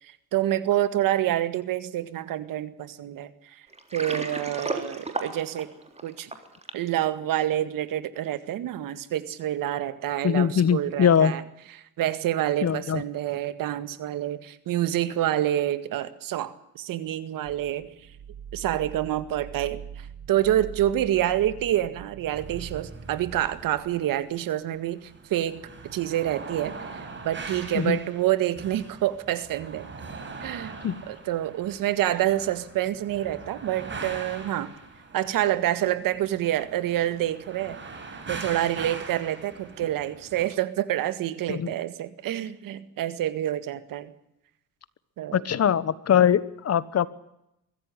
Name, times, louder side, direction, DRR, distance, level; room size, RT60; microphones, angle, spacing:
voice 1, 0.0-3.6 3.9-5.7 6.0-6.3 6.7-11.4 11.7-17.9 18.5-29.9 30.4-30.8 31.1-34.7 35.1-37.8 38.3-44.1 45.2-45.4, right 12 dB, 85° right, 13 dB, 2.0 m, -27 dB
Water, 3.7-6.9, right 3 dB, 20° right, 3.6 m, -33 dB
voice 2, 10.2-11.3 12.6-13.0 27.7-28.0 30.8-31.0 41.5-41.7 45.3-47.1, left 8 dB, 50° left, 17 dB, 1.3 m, -22 dB
sound 1, 17.4-22.8, right 8 dB, 55° right, 1.3 m, -43 dB
sound 2, 22.3-40.4, right 4 dB, 35° right, 5.9 m, -42 dB
23.5 x 15.0 x 9.9 m, 0.83 s
cardioid pair, 110°, 33 cm